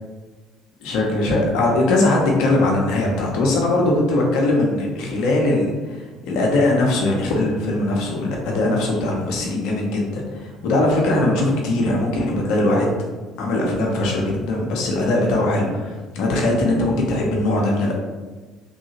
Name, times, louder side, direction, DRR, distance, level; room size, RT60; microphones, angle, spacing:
voice 1, 0.8-12.9 13.4-17.9, left 2 dB, 65° left, -1 dB, 0.7 m, -20 dB
3.2 x 2.7 x 2.8 m, 1.3 s
figure-of-eight pair, 55°, 0 cm